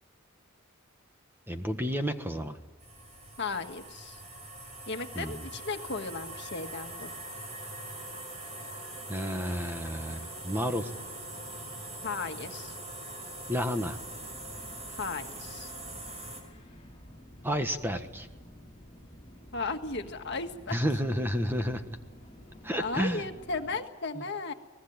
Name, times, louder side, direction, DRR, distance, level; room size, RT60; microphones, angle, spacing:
voice 1, 1.5-2.6 5.1-5.4 9.1-10.9 13.5-14.0 17.4-18.3 20.7-22.0 22.6-23.2 24.1-24.2, equal, 10° right, 7 dB, 1.4 m, -31 dB
sound 1, 2.8-16.4, right 2 dB, 30° right, 5.8 m, -42 dB
voice 2, 3.4-4.2 4.9-7.1 12.0-12.8 15.0-15.7 19.5-20.7 22.7-24.5, left 4 dB, 50° left, 6 dB, 1.8 m, -35 dB
sound 2, 14.0-23.8, equal, 25° left, 5.9 m, -51 dB
23.5 x 20.0 x 8.9 m, 1.2 s
head